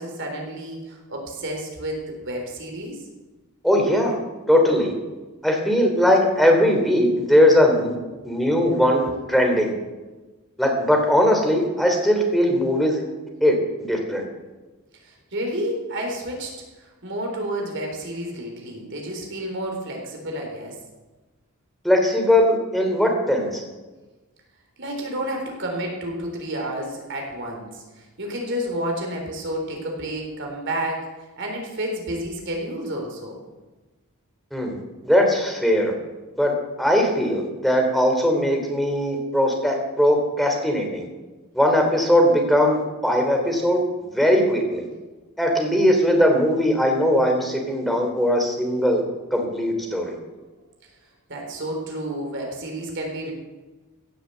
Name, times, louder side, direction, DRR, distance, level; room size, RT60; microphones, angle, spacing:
voice 1, 0.0-3.0 8.2-8.6 15.0-16.5 16.8-20.8 24.8-31.1 31.4-33.4 51.3-53.3, right 1 dB, 55° right, 1 dB, 3.6 m, -30 dB
voice 2, 3.6-4.2 4.5-4.9 5.4-7.9 8.2-9.7 10.6-13.0 13.4-13.5 13.9-14.2 21.8-23.6 34.5-34.7 35.0-35.9 36.4-36.5 36.8-41.1 41.5-43.8 44.1-44.9 45.4-49.0 49.3-50.1, equal, ahead, 2 dB, 3.0 m, -19 dB
16.5 x 7.9 x 7.9 m, 1.2 s
head